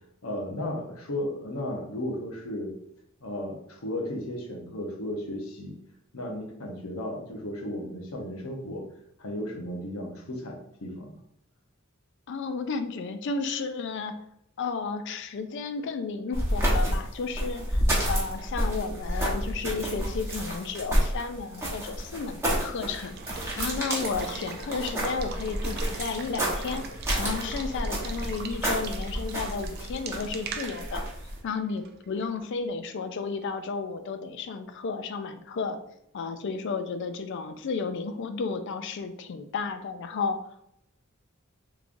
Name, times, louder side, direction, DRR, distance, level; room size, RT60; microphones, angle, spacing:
voice 1, 0.2-2.7 3.2-5.7 6.1-8.8 9.2-11.2, left 1 dB, 90° left, 1 dB, 0.8 m, -34 dB
voice 2, 12.3-14.2 14.6-26.8 27.2-31.1 31.4-35.8 36.1-40.5, left 4 dB, 55° left, 9 dB, 0.4 m, -33 dB
sound 1, 16.3-31.4, equal, 15° right, 0.9 m, -30 dB
Water / Water tap faucet / Liquid, 22.8-32.5, right 5 dB, 50° right, 0.4 m, -41 dB
3.6 x 3.1 x 2.5 m, 0.76 s
head